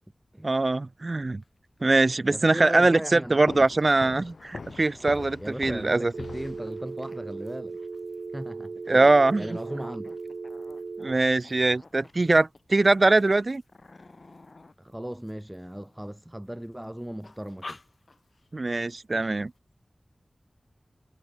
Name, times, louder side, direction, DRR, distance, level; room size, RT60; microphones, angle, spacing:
voice 1, 0.4-1.4 1.8-6.1 8.9-9.5 11.0-13.6 18.5-19.5, right 2 dB, 45° right, 0.8 m, -22 dB
sound 1, 1.4-1.5 1.8-4.3 4.7-16.0 16.5-16.8 17.2-18.5 18.8-18.9 19.2-19.6, left 3 dB, 50° left, 2.2 m, -51 dB
voice 2, 2.3-3.7 5.4-7.8 8.3-9.1 9.4-10.1 14.8-17.8, right 1 dB, 10° right, 1.0 m, -37 dB
sound 2, 3.5-7.2, left 4 dB, 80° left, 1.2 m, -42 dB
Telephone, 6.1-11.1, right 4 dB, 80° right, 3.2 m, -37 dB
wide cardioid pair, 80°, 0 cm